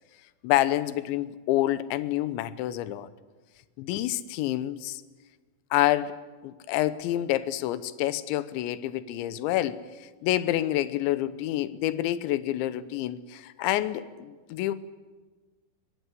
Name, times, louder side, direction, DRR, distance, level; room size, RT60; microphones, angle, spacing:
voice 1, 0.4-3.1 3.8-5.0 5.7-6.2 6.4-14.7, left 14 dB, 80° left, 14 dB, 3.1 m, -28 dB
23.0 x 18.5 x 9.8 m, 1.3 s
omnidirectional pair, 5.5 m